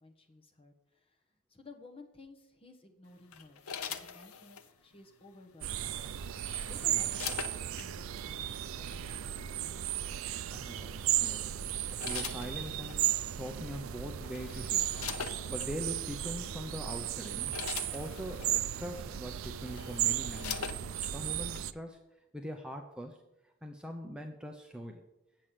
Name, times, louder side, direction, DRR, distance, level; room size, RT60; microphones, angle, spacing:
voice 1, 0.0-1.2 1.5-6.0 6.7-9.9, left 2 dB, 25° left, 2 dB, 1.2 m, -55 dB
sound 1, 3.3-4.7 6.0-7.9 8.9-9.2 10.8-11.1 11.7-13.0 13.8-13.9 14.2-15.7 16.4-16.6 17.0-18.5 19.2-19.3 19.6-21.1 21.6-21.7, left 7 dB, 80° left, 0.8 m, -42 dB
sound 2, 5.6-21.7, right 12 dB, 65° right, 0.4 m, -35 dB
voice 2, 10.5-11.5 11.9-14.9 15.5-17.5 17.9-20.8 21.0-22.0 22.3-23.2 23.4-25.0, equal, 5° right, 2 dB, 0.6 m, -42 dB
8.3 x 7.5 x 7.5 m, 0.95 s
head